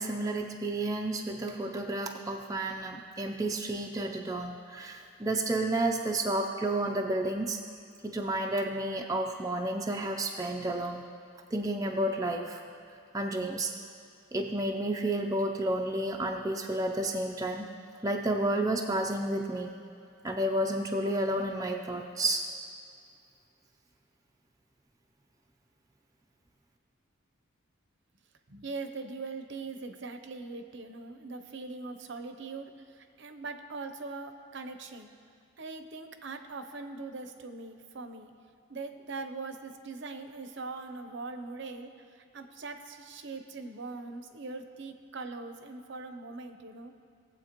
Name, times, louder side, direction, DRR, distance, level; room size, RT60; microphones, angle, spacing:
voice 1, 0.0-7.6 8.0-11.1 11.5-12.6 13.1-13.7 14.3-17.7 18.0-19.7 20.2-22.5, right 1 dB, 15° right, 1 dB, 0.4 m, -31 dB
voice 2, 28.5-35.1 35.6-38.3 38.7-46.9, right 3 dB, 55° right, 7 dB, 0.7 m, -41 dB
19.5 x 7.8 x 3.0 m, 2.5 s
head